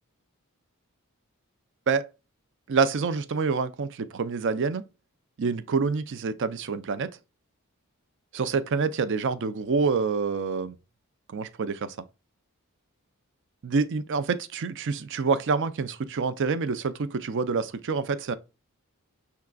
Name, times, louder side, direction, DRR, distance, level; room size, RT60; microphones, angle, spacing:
voice 1, 2.7-4.8 5.4-7.1 8.3-10.8 11.3-12.0 13.6-18.4, right 5 dB, 55° right, 0.5 m, -27 dB
5.6 x 3.7 x 2.2 m
head